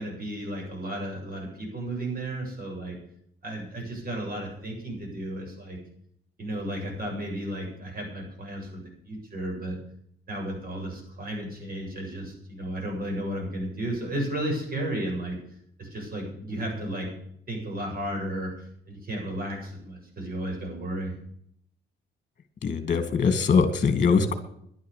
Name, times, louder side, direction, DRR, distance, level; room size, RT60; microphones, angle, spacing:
voice 1, 0.0-3.0 3.4-5.8 6.4-9.8 10.3-15.4 15.8-17.1 17.5-18.5 18.9-21.2, right 1 dB, 50° right, 1 dB, 7.6 m, -33 dB
voice 2, 22.6-24.3, left 5 dB, 40° left, 8 dB, 2.3 m, -22 dB
11.0 x 10.5 x 8.5 m, 0.69 s
cardioid pair, 90°, 20 cm